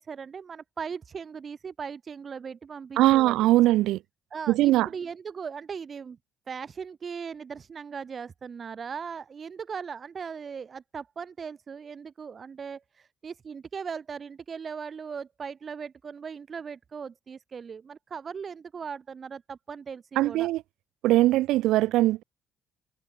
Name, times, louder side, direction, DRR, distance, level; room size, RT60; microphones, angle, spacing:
voice 1, 0.0-3.5 4.3-6.2 6.5-20.5, right 6 dB, 40° right, 3.3 m, -38 dB
voice 2, 3.0-4.0 4.5-4.9 20.2-20.6 21.0-22.2, right 16 dB, 80° right, 0.8 m, -21 dB
supercardioid pair, 80°, 0 cm